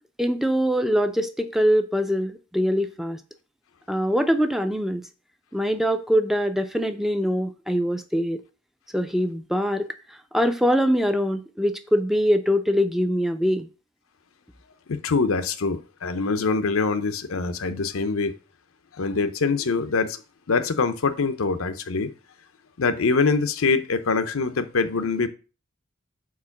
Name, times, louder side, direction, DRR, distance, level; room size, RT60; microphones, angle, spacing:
voice 1, 0.0-3.2 3.9-5.1 5.5-8.4 8.9-13.7, equal, ahead, 0.4 m, -23 dB
voice 2, 14.9-18.3 19.0-20.2 20.5-22.1 22.8-25.3, left 4 dB, 85° left, 0.7 m, -24 dB
4.7 x 4.4 x 5.8 m
head